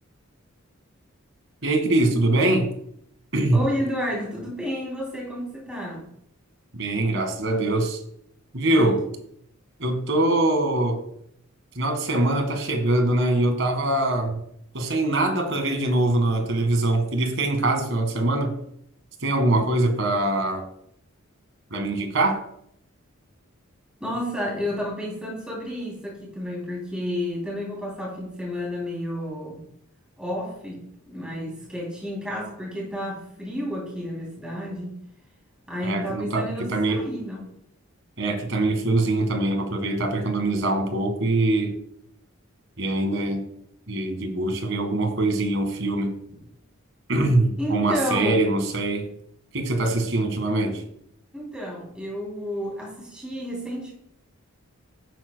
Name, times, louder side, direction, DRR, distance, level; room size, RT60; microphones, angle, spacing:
voice 1, 1.6-2.7 3.3-3.6 6.7-8.0 8.5-9.0 9.8-11.0 11.8-14.4 14.7-18.5 19.2-20.6 21.7-22.4 35.8-37.1 38.2-41.8 42.8-43.4 43.9-46.1 47.1-49.1 49.5-50.8, right 2 dB, 65° right, 5 dB, 1.9 m, -23 dB
voice 2, 3.5-6.0 8.7-8.9 24.0-29.6 30.2-34.9 35.7-37.5 47.6-48.4 51.3-53.9, equal, 5° right, -4 dB, 3.2 m, -31 dB
11.5 x 9.5 x 2.3 m, 0.71 s
head